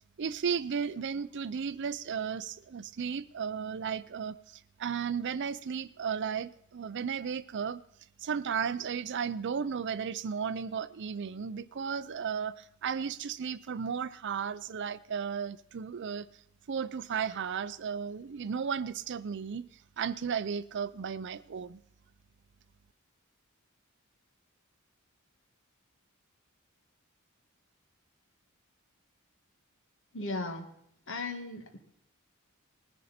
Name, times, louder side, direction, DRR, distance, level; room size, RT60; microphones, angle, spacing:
voice 1, 0.2-7.8 8.2-16.3 16.7-19.7 20.0-21.8, right 6 dB, 55° right, 12 dB, 0.5 m, -34 dB
voice 2, 30.1-30.7 31.1-31.8, left 2 dB, 60° left, 5 dB, 2.0 m, -36 dB
19.0 x 10.5 x 4.3 m, 0.74 s
head